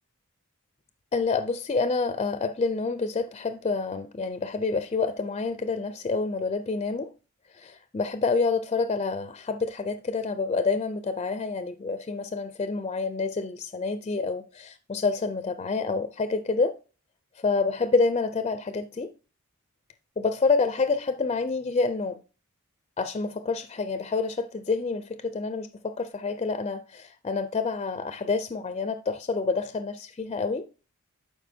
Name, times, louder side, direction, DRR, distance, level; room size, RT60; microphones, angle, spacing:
voice 1, 1.1-7.1 7.5-16.8 17.4-19.1 20.2-22.2 23.0-30.7, left 4 dB, 25° left, 0.4 m, -28 dB
11.5 x 4.9 x 2.7 m
head